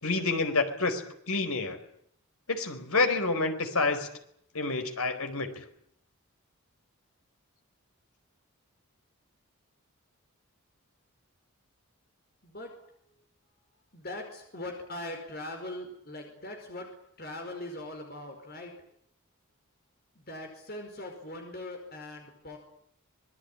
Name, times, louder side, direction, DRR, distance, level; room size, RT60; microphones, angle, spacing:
voice 1, 0.0-1.8 2.5-4.1 4.5-5.6, left 3 dB, 80° left, 7 dB, 4.6 m, -28 dB
voice 2, 13.9-16.9 17.2-18.7 20.1-22.6, left 1 dB, 45° left, 3 dB, 5.0 m, -41 dB
26.5 x 20.0 x 9.8 m, 0.72 s
head